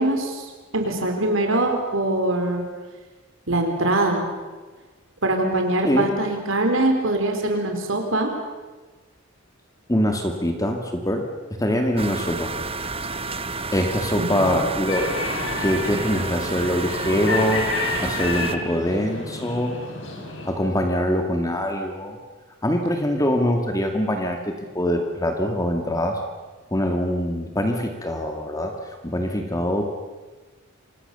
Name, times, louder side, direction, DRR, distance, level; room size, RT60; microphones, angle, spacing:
voice 1, 0.0-2.6 3.5-4.3 5.2-8.3 14.2-14.6, right 2 dB, 70° right, 3 dB, 4.3 m, -23 dB
voice 2, 9.9-11.3 11.6-12.5 13.7-15.1 15.6-17.7 18.0-19.7 20.4-22.2 22.6-26.2 26.7-29.8, equal, 15° left, 3 dB, 2.2 m, -23 dB
sound 1, 12.0-18.6, right 3 dB, 30° right, 1.0 m, -30 dB
sound 2, 14.9-20.5, left 2 dB, 65° left, 6.9 m, -30 dB
29.0 x 25.5 x 6.9 m, 1.3 s
head